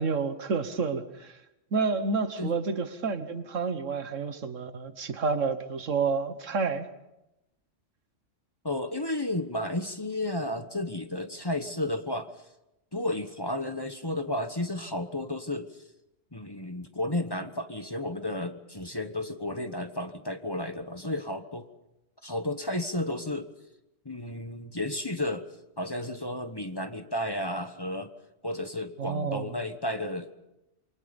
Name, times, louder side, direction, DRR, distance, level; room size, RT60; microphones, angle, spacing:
voice 1, 0.0-1.4 1.7-6.9 29.0-29.6, right 4 dB, 85° right, 1.7 m, -29 dB
voice 2, 8.6-12.3 12.9-15.8 16.3-21.7 22.2-23.5 24.0-25.5 25.8-28.1 28.4-30.3, left 1 dB, 20° left, 1.1 m, -32 dB
27.0 x 24.5 x 5.3 m
omnidirectional pair, 1.3 m